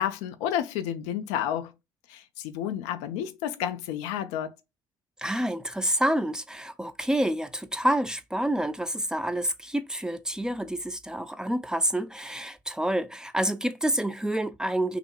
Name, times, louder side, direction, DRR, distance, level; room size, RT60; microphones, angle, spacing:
voice 1, 0.0-1.7 2.1-4.5, left 10 dB, 70° left, 0.6 m, -30 dB
voice 2, 5.2-15.0, right 1 dB, 5° right, 0.5 m, -28 dB
5.9 x 2.1 x 2.4 m
hypercardioid pair, 55°, 12 cm